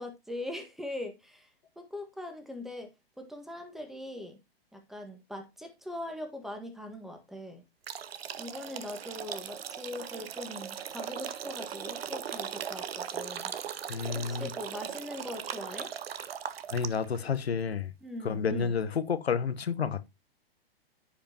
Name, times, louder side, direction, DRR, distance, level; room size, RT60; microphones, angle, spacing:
voice 1, 0.0-1.5 1.7-4.4 4.7-7.6 8.4-13.5 14.1-15.9 18.0-18.7, left 1 dB, ahead, 1.6 m, -41 dB
sound 1, 7.8-17.2, right 8 dB, 75° right, 0.8 m, -39 dB
voice 2, 13.9-14.5 16.7-17.9 18.2-20.1, left 6 dB, 85° left, 1.1 m, -30 dB
14.5 x 5.1 x 2.9 m
hypercardioid pair, 120°, 31 cm